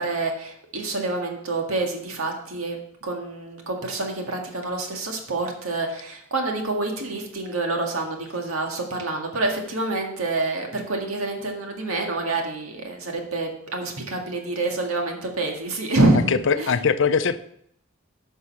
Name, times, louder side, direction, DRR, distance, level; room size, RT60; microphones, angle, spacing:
voice 1, 0.0-16.2 16.6-16.7, right 2 dB, 85° right, 2 dB, 1.9 m, -27 dB
voice 2, 16.3-17.4, left 5 dB, 65° left, 12 dB, 0.6 m, -21 dB
9.6 x 5.5 x 5.9 m, 0.70 s
head